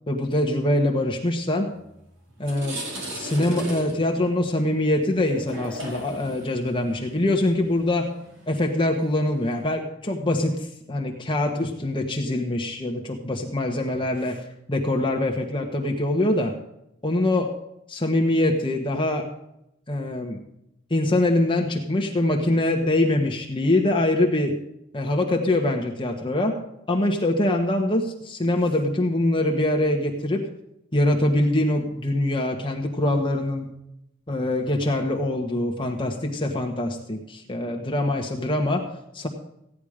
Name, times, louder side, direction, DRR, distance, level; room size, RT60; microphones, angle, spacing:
voice 1, 0.1-1.7 2.4-2.8 3.1-8.1 8.5-14.4 14.7-16.5 17.0-17.5 17.9-19.3 19.9-20.4 20.9-24.5 24.9-26.6 26.9-30.5 30.9-33.7 34.3-38.8 39.1-39.3, left 1 dB, 25° left, 1 dB, 1.3 m, -24 dB
sound 1, 1.8-1.9 2.3-9.6, right 1 dB, 70° right, 5.4 m, -37 dB
16.0 x 10.5 x 5.0 m, 0.83 s
head